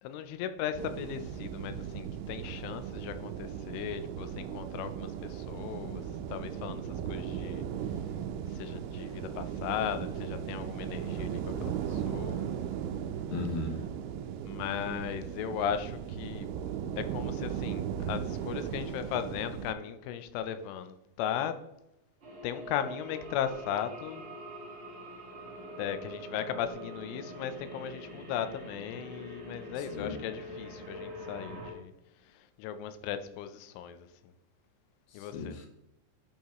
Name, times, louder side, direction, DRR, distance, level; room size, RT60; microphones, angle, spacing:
voice 1, 0.0-6.0 6.3-7.6 8.5-12.5 14.4-16.5 17.0-21.6 22.4-24.2 25.8-31.9 32.3-34.1 35.1-35.5, left 9 dB, 85° left, 10 dB, 3.1 m, -37 dB
sound 1, 0.8-19.7, right 9 dB, 90° right, 3.2 m, -37 dB
voice 2, 13.3-13.8 29.8-30.2 35.1-35.7, left 3 dB, 70° left, 3 dB, 2.7 m, -36 dB
sound 2, 22.2-31.7, equal, 45° right, 2.0 m, -44 dB
11.5 x 5.5 x 3.0 m, 0.86 s
omnidirectional pair, 5.5 m